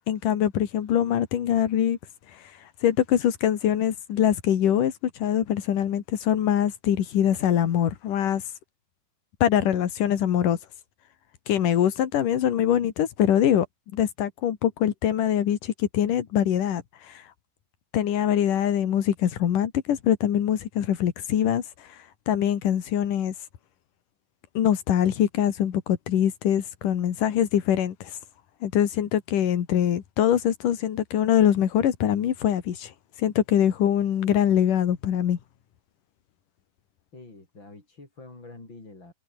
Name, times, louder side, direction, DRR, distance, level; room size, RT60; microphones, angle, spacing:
voice 1, 0.1-2.0 2.8-8.4 9.4-10.6 11.5-13.7 13.9-16.8 17.1-17.2 17.9-21.6 22.3-23.3 24.6-28.1 28.6-32.9 33.2-35.4, left 10 dB, 70° left, 3.5 m, -23 dB
voice 2, 37.1-39.1, left 2 dB, 35° left, 7.2 m, -46 dB
omnidirectional pair, 3.9 m